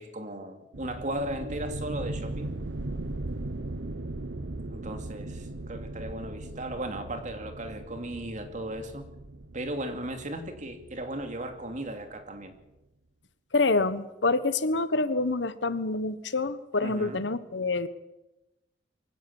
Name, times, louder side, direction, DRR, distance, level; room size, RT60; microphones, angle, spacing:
voice 1, 0.0-2.5 4.7-9.1 9.5-12.6 16.8-17.2, right 1 dB, 45° right, 6 dB, 2.6 m, -36 dB
sound 1, 0.7-12.2, right 2 dB, 85° right, 1.0 m, -38 dB
voice 2, 13.5-17.9, left 3 dB, 80° left, 13 dB, 1.2 m, -27 dB
23.5 x 16.5 x 7.2 m, 0.96 s
head